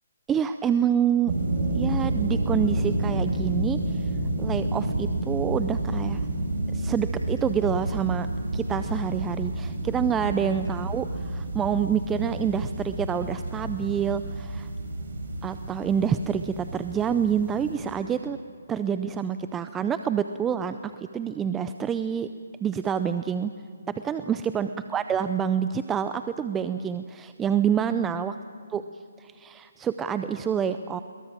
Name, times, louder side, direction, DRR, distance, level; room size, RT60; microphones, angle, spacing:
voice 1, 0.3-1.3 1.8-4.1 4.4-6.2 6.7-8.3 8.5-14.7 15.4-18.4 18.7-22.3 22.6-23.5 23.9-28.4 28.7-28.8 29.2-31.0, right 8 dB, 10° right, 10 dB, 0.5 m, -27 dB
sound 1, 1.3-17.8, right 2 dB, 60° right, 5.2 m, -30 dB
23.0 x 22.5 x 7.4 m, 2.2 s
hypercardioid pair, 160°, 0 cm